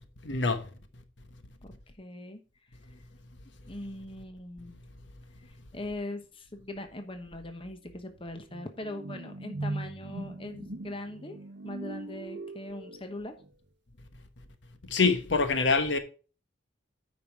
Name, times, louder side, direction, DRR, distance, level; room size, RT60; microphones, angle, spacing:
voice 1, 0.2-0.7 14.9-16.0, left 4 dB, 70° left, 1.1 m, -25 dB
voice 2, 1.6-2.4 3.7-4.7 5.4-11.4 11.6-13.3, left 1 dB, 30° left, 1.1 m, -41 dB
sound 1, 6.9-7.0 7.4-13.5, right 2 dB, 60° right, 0.7 m, -41 dB
9.5 x 5.3 x 4.7 m
head